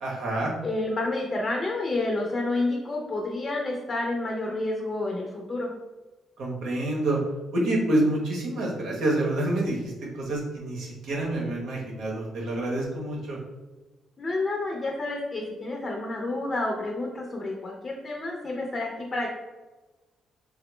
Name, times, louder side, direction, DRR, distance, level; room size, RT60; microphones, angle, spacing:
voice 1, 0.0-0.5 6.4-7.2 7.5-13.4, right 1 dB, 80° right, -2 dB, 0.9 m, -27 dB
voice 2, 0.6-5.7 14.2-19.3, left 2 dB, 30° left, -1 dB, 0.5 m, -29 dB
3.5 x 2.1 x 3.1 m, 1.2 s
cardioid pair, 90°, 0 cm